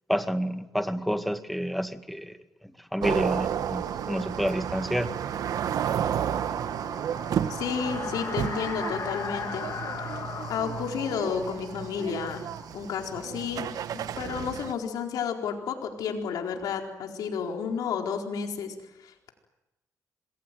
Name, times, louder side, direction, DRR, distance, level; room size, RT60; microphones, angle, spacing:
voice 1, 0.1-2.4 2.9-5.2, equal, ahead, 1.9 m, -29 dB
sound 1, 3.0-14.7, right 9 dB, 75° right, 1.3 m, -32 dB
gust-mono, 4.5-13.2, left 7 dB, 60° left, 2.9 m, -39 dB
voice 2, 7.5-9.7 10.0-10.1 10.5-12.4 12.7-19.3, left 6 dB, 85° left, 4.4 m, -32 dB
26.5 x 22.0 x 9.3 m
cardioid pair, 80°, 6 cm